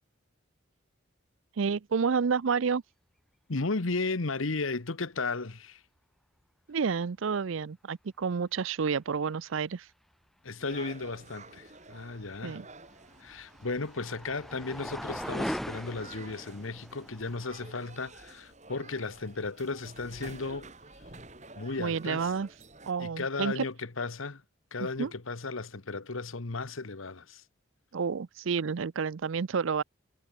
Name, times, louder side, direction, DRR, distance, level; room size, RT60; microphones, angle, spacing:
voice 1, 1.6-2.8 6.7-9.9 12.4-12.7 21.8-22.5 22.9-23.6 24.8-25.1 27.9-29.8, right 5 dB, 75° right, 0.5 m, -30 dB
voice 2, 3.5-5.8 10.4-12.6 13.2-20.7 21.6-22.3 23.0-24.4 24.7-27.4, left 3 dB, 80° left, 1.3 m, -35 dB
sound 1, 10.6-22.9, right 3 dB, 35° right, 6.5 m, -51 dB
sound 2, 12.5-17.8, equal, ahead, 2.8 m, -40 dB
head